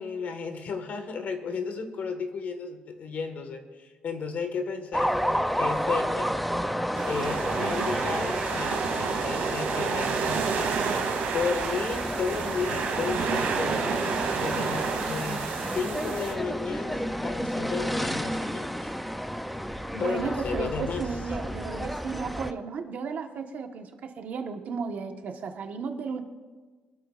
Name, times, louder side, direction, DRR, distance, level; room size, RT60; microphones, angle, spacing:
voice 1, 0.0-5.1 5.5-6.3 7.0-10.8 11.3-18.9 20.0-21.1, left 5 dB, 50° left, 6 dB, 1.6 m, -33 dB
sound 1, 4.9-22.5, equal, ahead, 0.6 m, -31 dB
sound 2, 6.9-16.3, right 5 dB, 80° right, 2.7 m, -30 dB
voice 2, 19.9-26.2, right 5 dB, 55° right, 5 dB, 1.4 m, -34 dB
25.0 x 13.0 x 2.5 m, 1.4 s
cardioid pair, 140°, 3 cm